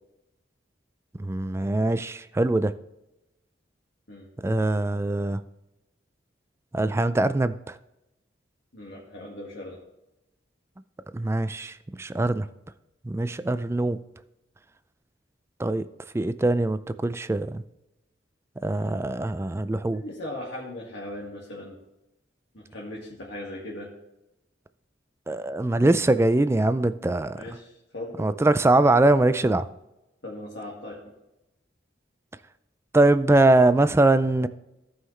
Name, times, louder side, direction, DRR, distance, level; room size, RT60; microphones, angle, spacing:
voice 1, 1.2-2.7 4.4-5.4 6.7-7.7 11.1-12.5 13.0-14.0 15.6-15.9 16.1-17.6 18.6-20.0 25.3-27.4 28.2-29.7 32.9-34.5, right 2 dB, 15° right, 13 dB, 0.3 m, -22 dB
voice 2, 8.7-9.8 19.8-21.8 22.5-23.9 27.3-28.3 30.2-31.0, left 1 dB, 65° left, -4 dB, 2.0 m, -38 dB
16.0 x 5.6 x 3.3 m, 0.93 s
head